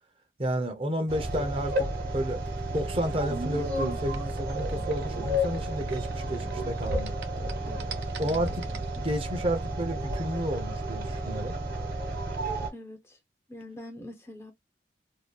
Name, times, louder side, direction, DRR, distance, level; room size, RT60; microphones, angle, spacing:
voice 1, 0.4-1.9 2.1-2.4 2.7-7.1 8.2-8.6 9.0-11.6, equal, 30° right, 0.6 m, -31 dB
sound 1, 1.1-12.7, right 1 dB, 55° right, 1.1 m, -32 dB
sound 2, 1.2-9.5, equal, 85° left, 0.6 m, -45 dB
sound 3, 2.2-6.5 6.8-9.0, right 4 dB, 90° right, 0.7 m, -41 dB
voice 2, 7.7-8.4 8.7-9.0 12.7-13.2 13.5-14.5, left 1 dB, 15° left, 0.5 m, -45 dB
2.6 x 2.3 x 2.2 m
head